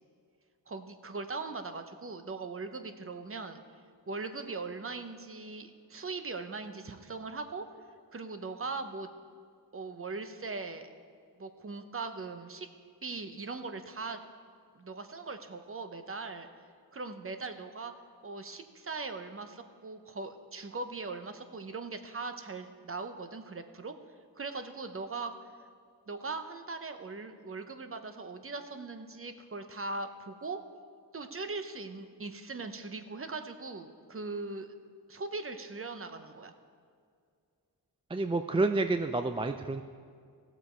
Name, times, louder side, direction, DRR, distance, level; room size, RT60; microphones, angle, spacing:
voice 1, 0.7-3.6 4.1-7.6 8.1-9.1 9.7-10.9 11.4-12.7 13.0-14.2 14.7-16.5 16.9-17.9 18.2-23.9 24.4-25.3 26.1-30.6 31.1-34.7 35.1-36.5, right 3 dB, 30° right, 8 dB, 0.9 m, -40 dB
voice 2, 38.1-39.8, right 2 dB, 15° right, 8 dB, 0.3 m, -29 dB
16.5 x 6.9 x 4.5 m, 2.2 s
cardioid pair, 80°, 43 cm